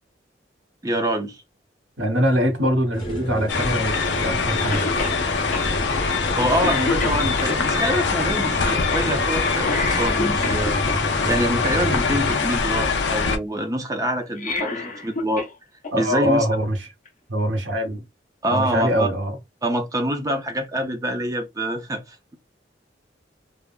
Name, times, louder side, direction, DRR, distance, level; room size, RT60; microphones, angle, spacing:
voice 1, 0.8-1.4 6.4-10.8 11.3-15.5 16.0-16.5 18.4-19.1 19.6-22.3, right 1 dB, 20° right, 0.5 m, -25 dB
voice 2, 2.0-4.8 15.9-16.8 17.3-18.0 18.5-19.4, equal, 85° right, 0.9 m, -23 dB
sound 1, 2.9-12.4, right 1 dB, 25° left, 1.2 m, -31 dB
sound 2, 3.5-13.4, left 4 dB, 70° left, 0.5 m, -23 dB
Cough, 4.7-5.2 5.5-5.7 6.2-6.3 6.6-7.6 9.6-11.0 14.2-15.5 15.8-15.9 17.1-17.2, left 3 dB, 45° left, 0.8 m, -28 dB
3.4 x 2.0 x 2.3 m
head